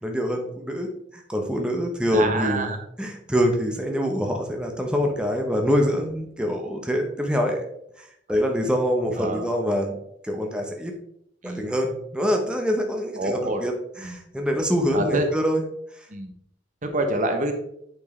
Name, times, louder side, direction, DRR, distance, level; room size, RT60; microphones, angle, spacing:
voice 1, 0.0-7.6 8.0-10.0 10.2-10.9 11.4-15.6, equal, 5° right, 2 dB, 0.7 m, -25 dB
voice 2, 2.1-2.8 9.2-9.4 11.4-11.6 13.2-13.6 14.0-14.2 14.9-15.3 16.1-16.3 16.8-17.5, right 2 dB, 45° right, 6 dB, 0.9 m, -26 dB
8.5 x 4.4 x 3.2 m, 0.75 s
head